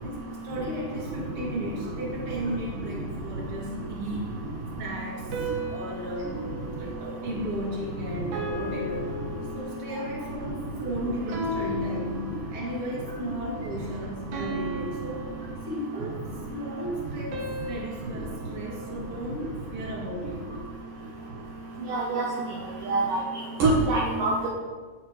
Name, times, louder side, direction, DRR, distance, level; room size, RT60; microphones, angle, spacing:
voice 1, 0.0-4.4 4.7-6.4 6.8-9.2 9.5-15.3 15.7-16.2 16.5-20.4 21.0-21.1 22.8-22.9, equal, 40° right, -3 dB, 3.0 m, -35 dB
sound 1, 5.3-7.8 8.3-10.1 11.3-12.9 14.3-16.2 17.3-19.7, equal, 85° right, 3.6 m, -37 dB
voice 2, 21.9-22.3 22.9-23.2 23.6-24.5, right 2 dB, 65° right, -4 dB, 2.7 m, -24 dB
17.5 x 8.2 x 3.3 m, 1.5 s
omnidirectional pair, 4.4 m